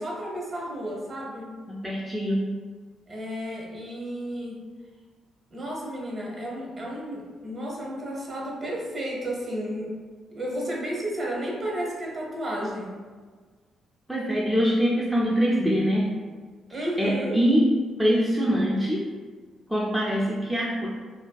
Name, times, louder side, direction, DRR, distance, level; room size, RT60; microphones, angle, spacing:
voice 1, 0.0-1.6 3.1-4.6 5.5-9.9 10.3-13.0 16.7-17.4, equal, 40° right, -3 dB, 0.7 m, -32 dB
voice 2, 1.7-2.5 14.1-16.2 16.7-19.1 19.7-20.9, equal, 5° right, -5 dB, 0.3 m, -24 dB
2.5 x 2.2 x 2.2 m, 1.5 s
cardioid pair, 90°, 0 cm